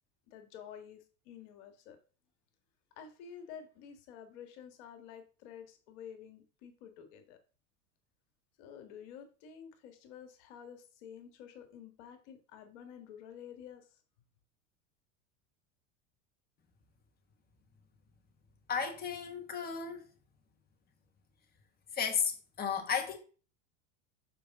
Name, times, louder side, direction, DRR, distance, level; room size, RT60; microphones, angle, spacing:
voice 1, 0.3-2.0 3.0-7.4 8.6-13.8, left 8 dB, 70° left, 1.7 m, -50 dB
voice 2, 18.7-20.0 21.9-23.2, left 6 dB, 25° left, 1.5 m, -34 dB
6.8 x 5.1 x 3.7 m
supercardioid pair, 105°, 36 cm